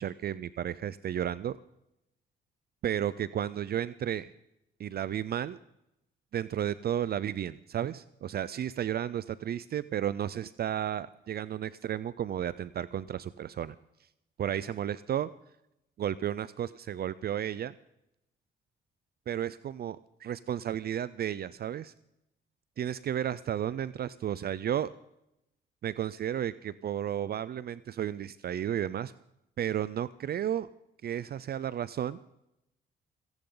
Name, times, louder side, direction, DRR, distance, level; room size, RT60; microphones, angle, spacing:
voice 1, 0.0-1.6 2.8-4.3 4.8-5.6 6.3-13.7 14.4-15.3 16.0-17.7 19.3-21.9 22.8-24.9 25.8-29.1 29.6-30.7 31.0-32.2, right 10 dB, 50° right, 17 dB, 0.5 m, -33 dB
29.5 x 10.5 x 3.9 m, 0.84 s
cardioid pair, 90°, 20 cm